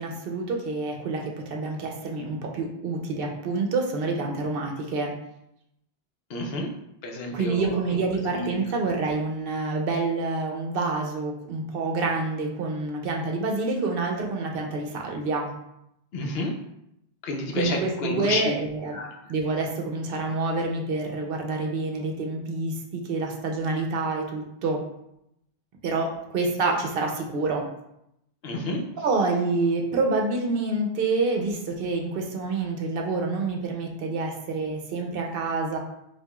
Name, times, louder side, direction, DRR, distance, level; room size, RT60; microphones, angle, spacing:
voice 1, 0.0-5.1 7.3-15.5 17.5-19.0 19.3-24.8 25.8-27.7 29.0-35.8, right 3 dB, 65° right, 1 dB, 0.7 m, -27 dB
voice 2, 6.3-6.7 7.0-7.8 8.3-8.6 16.1-16.5 17.2-18.5 18.9-19.1 28.4-28.8, left 2 dB, 75° left, 2 dB, 0.8 m, -29 dB
4.6 x 2.4 x 2.3 m, 0.80 s
omnidirectional pair, 1.1 m